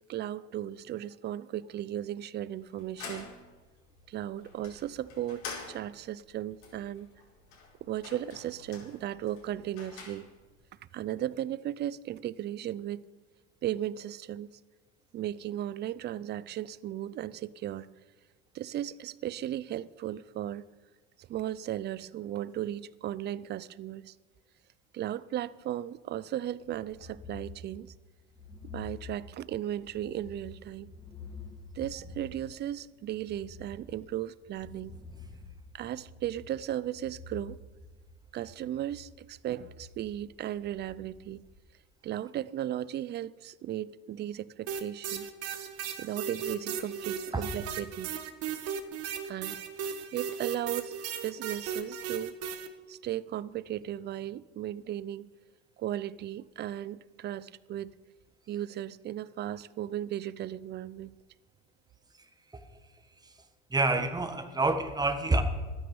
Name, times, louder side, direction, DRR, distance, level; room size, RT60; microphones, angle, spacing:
voice 1, 0.1-3.3 4.1-7.1 7.8-10.3 10.9-13.0 13.6-14.5 15.1-17.9 18.5-20.6 21.2-24.1 24.9-27.9 28.7-30.9 31.7-35.0 35.7-37.6 38.3-41.4 42.0-45.3 46.0-48.1 49.3-49.6 50.1-50.9 51.2-52.3 52.9-55.3 55.8-57.9 58.5-61.1, right 12 dB, 35° right, 0.5 m, -36 dB
sound 1, 2.6-10.6, left 5 dB, 70° left, 4.8 m, -48 dB
sound 2, 26.6-41.6, left 4 dB, 15° left, 2.3 m, -49 dB
sound 3, 44.7-52.7, right 7 dB, 50° right, 1.3 m, -36 dB
voice 2, 63.7-65.4, right 2 dB, 10° right, 1.4 m, -27 dB
12.5 x 9.7 x 7.1 m
supercardioid pair, 115°, 31 cm